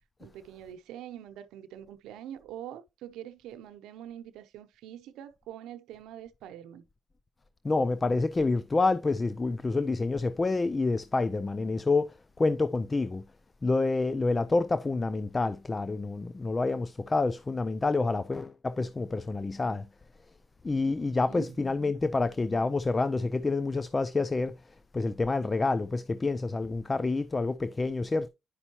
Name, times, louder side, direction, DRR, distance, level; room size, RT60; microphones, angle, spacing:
voice 1, 0.2-6.9 21.0-21.6, right 11 dB, 90° right, 0.7 m, -44 dB
voice 2, 7.6-13.2 13.6-19.9 20.6-24.6 24.9-28.3, left 3 dB, 25° left, 0.4 m, -28 dB
9.9 x 5.3 x 2.9 m
cardioid pair, 90°, 0 cm